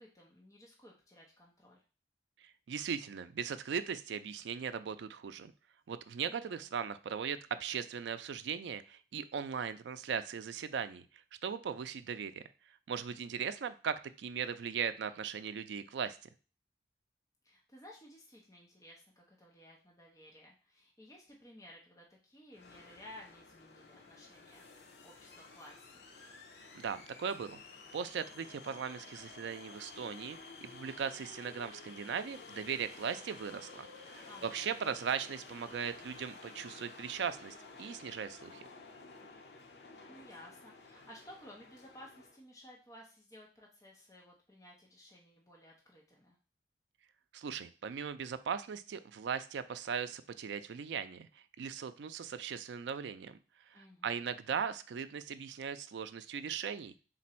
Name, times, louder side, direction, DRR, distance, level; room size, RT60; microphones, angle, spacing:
voice 1, 0.0-1.8 6.2-6.7 17.4-26.1 34.2-34.9 40.1-46.4 53.7-54.2, left 1 dB, 20° left, -3 dB, 0.7 m, -56 dB
voice 2, 2.4-5.5 5.9-11.0 11.4-12.4 12.9-16.2 26.7-27.6 27.9-38.6 47.3-51.3 51.6-53.4 53.7-57.0, right 7 dB, 85° right, 12 dB, 0.4 m, -38 dB
sound 1, 22.5-42.4, left 3 dB, 80° left, 0.7 m, -53 dB
3.8 x 2.6 x 4.2 m, 0.35 s
head